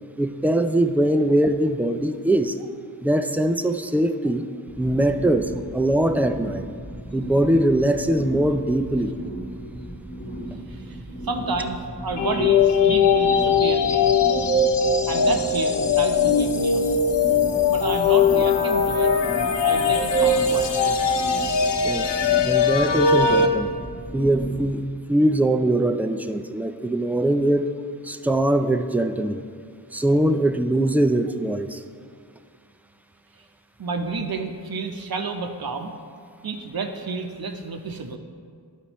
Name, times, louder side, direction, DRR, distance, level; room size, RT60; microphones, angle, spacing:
voice 1, 0.2-2.6 3.0-4.5 4.8-6.7 7.1-9.1 21.8-23.7 24.1-27.7 28.0-29.4 29.9-31.8, right 1 dB, 5° right, 8 dB, 0.3 m, -22 dB
sound 1, 4.7-24.7, right 1 dB, 20° left, 1.0 m, -35 dB
voice 2, 10.7-11.0 11.2-14.2 15.1-16.8 17.7-19.1 19.6-21.0 33.8-35.9 36.4-38.2, right 4 dB, 60° right, 5 dB, 0.7 m, -30 dB
sound 2, 12.2-23.5, left 5 dB, 85° left, 0.6 m, -20 dB
12.0 x 4.3 x 3.0 m, 2.1 s
wide cardioid pair, 40°, 41 cm